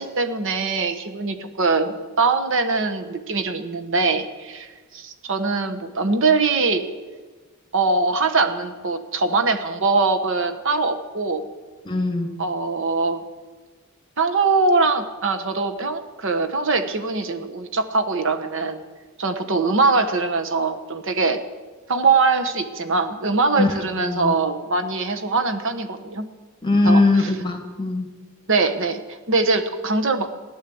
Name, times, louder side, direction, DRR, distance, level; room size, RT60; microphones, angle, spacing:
voice 1, 0.0-6.9 7.7-11.4 12.4-13.2 14.2-18.8 19.2-21.4 21.9-26.3 26.8-27.3 28.5-30.4, right 3 dB, 60° right, 8 dB, 1.2 m, -22 dB
voice 2, 11.9-12.3 23.6-24.3 26.6-28.1, left 2 dB, 20° left, 5 dB, 1.9 m, -20 dB
16.0 x 11.0 x 7.8 m, 1.3 s
head